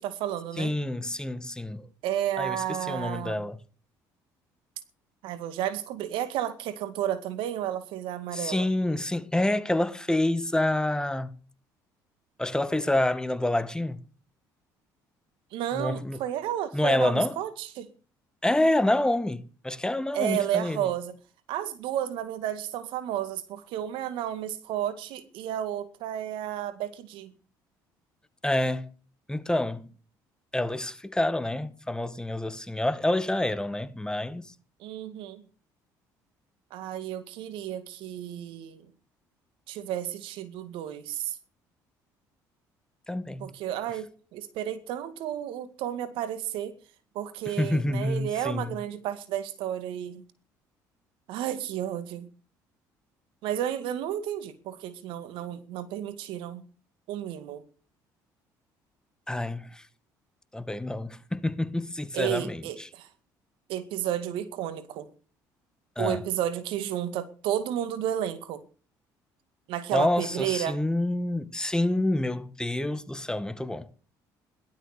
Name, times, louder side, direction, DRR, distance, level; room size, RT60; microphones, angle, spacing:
voice 1, 0.0-0.7 2.0-3.4 5.2-8.7 15.5-17.9 20.1-21.1 21.5-27.3 34.8-35.4 36.7-38.9 39.7-41.4 43.4-46.7 47.1-50.2 51.3-52.3 53.4-56.6 57.1-57.6 62.1-63.1 63.7-65.1 66.0-68.6 69.7-70.8, right 11 dB, 75° right, 2.1 m, -32 dB
voice 2, 0.6-1.9 2.4-3.6 8.3-11.3 12.4-14.0 15.7-16.2 16.7-17.4 18.4-20.9 28.4-28.9 29.3-29.9 30.5-34.5 43.1-43.6 47.5-48.8 59.3-59.9 60.5-62.9 66.0-66.2 69.9-73.9, left 1 dB, 10° left, 1.8 m, -28 dB
17.0 x 12.5 x 6.7 m
supercardioid pair, 75°, 9 cm